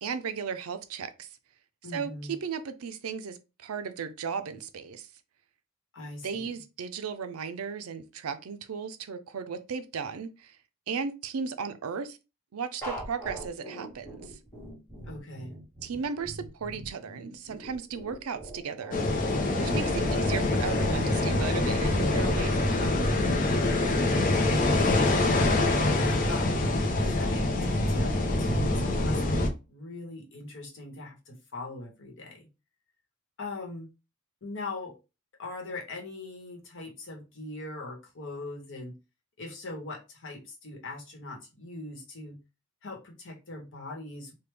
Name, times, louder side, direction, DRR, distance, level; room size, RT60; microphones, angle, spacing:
voice 1, 0.0-1.3 1.9-5.1 6.2-10.6 10.9-12.2 12.5-14.4 15.8-19.0 19.6-23.1, right 6 dB, 75° right, 0.5 m, -35 dB
voice 2, 1.8-2.3 5.9-6.4 15.1-15.5 24.3-25.6 25.9-26.5 27.0-32.4 33.4-33.9 34.4-34.9 35.4-38.9 39.4-42.4 42.8-44.3, left 2 dB, 60° left, 1.1 m, -40 dB
sound 1, 12.8-23.0, right 1 dB, 10° left, 1.2 m, -43 dB
sound 2, 18.9-29.5, left 2 dB, 40° left, 0.6 m, -25 dB
3.3 x 2.2 x 3.3 m
head